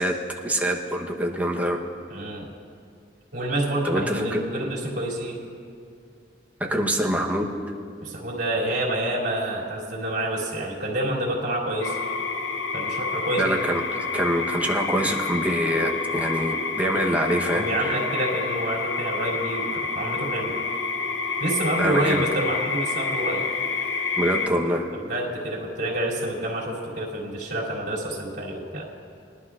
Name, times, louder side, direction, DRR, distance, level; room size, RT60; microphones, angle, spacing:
voice 1, 0.0-1.8 3.8-4.4 6.6-7.5 13.4-13.8 14.1-17.9 21.8-22.3 24.2-24.9, right 1 dB, 10° right, 0 dB, 0.9 m, -25 dB
voice 2, 2.1-2.5 3.3-5.4 8.0-12.0 12.7-13.6 17.5-20.5 21.4-23.4 24.9-28.9, right 1 dB, 60° right, -5 dB, 2.9 m, -28 dB
sound 1, 11.8-24.5, left 4 dB, 75° left, 0.8 m, -28 dB
22.0 x 11.5 x 2.5 m, 2.3 s
head